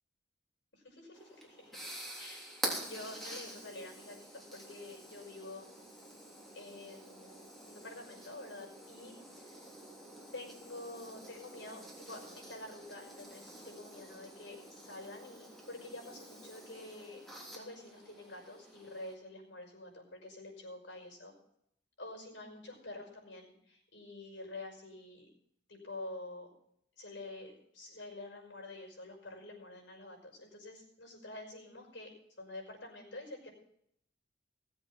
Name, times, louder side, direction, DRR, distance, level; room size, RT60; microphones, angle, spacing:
voice 1, 0.7-1.8 2.2-5.7 6.5-9.6 10.3-21.3 22.0-25.3 25.7-26.5 27.0-32.1 32.4-33.5, left 2 dB, 80° left, 0 dB, 5.5 m, -48 dB
sound 1, 1.1-19.1, right 1 dB, ahead, 3.3 m, -47 dB
18.0 x 7.8 x 5.9 m, 0.72 s
head